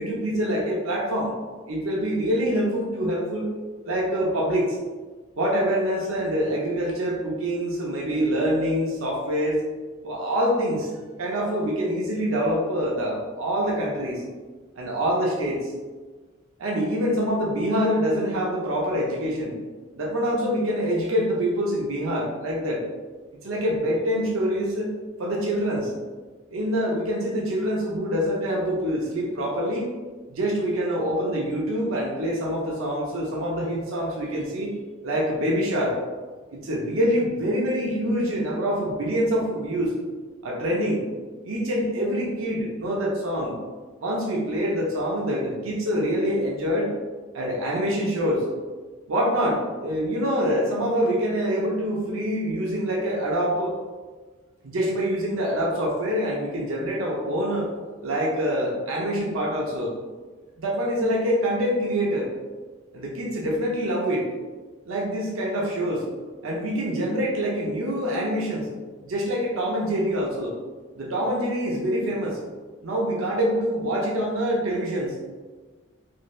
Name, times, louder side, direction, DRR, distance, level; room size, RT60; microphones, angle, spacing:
voice 1, 0.0-1.4 1.7-3.5 3.8-4.8 5.4-9.6 10.0-10.9 11.2-14.2 14.8-15.7 16.6-19.6 20.0-22.8 23.4-24.9 25.2-25.9 26.5-29.9 30.3-34.7 35.0-36.0 36.5-39.9 40.4-41.0 41.4-43.5 44.0-46.9 47.3-48.5 49.1-53.7 54.6-57.7 58.0-59.9 60.6-62.3 62.9-64.2 64.9-66.0 66.4-68.7 69.0-70.5 70.9-72.4 72.8-75.1, equal, 85° right, -3 dB, 0.6 m, -25 dB
2.7 x 2.6 x 3.1 m, 1.4 s
head